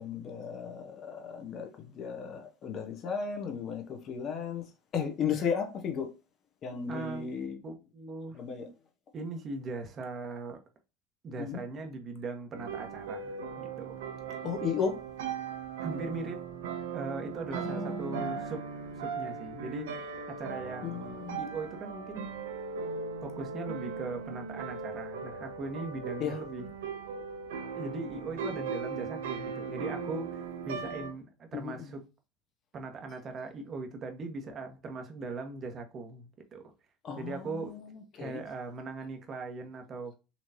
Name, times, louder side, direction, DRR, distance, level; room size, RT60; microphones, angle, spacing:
voice 1, 0.0-4.6 4.9-6.1 6.6-7.6 8.4-8.6 11.4-11.6 14.4-15.0 17.5-18.4 20.8-21.4 26.2-26.3 31.5-31.8 37.0-37.8 38.2-38.4, left 6 dB, 45° left, 1.0 m, -35 dB
voice 2, 6.9-7.3 7.6-8.4 9.1-10.6 11.2-14.0 15.8-16.5 16.9-18.6 19.0-19.9 20.3-22.3 23.2-26.7 27.8-32.0 32.7-36.6 37.2-37.8 38.2-40.1, right 3 dB, 40° right, 1.1 m, -39 dB
sound 1, 12.5-31.1, right 5 dB, 80° right, 0.6 m, -38 dB
4.3 x 3.0 x 2.7 m
hypercardioid pair, 85°, 0 cm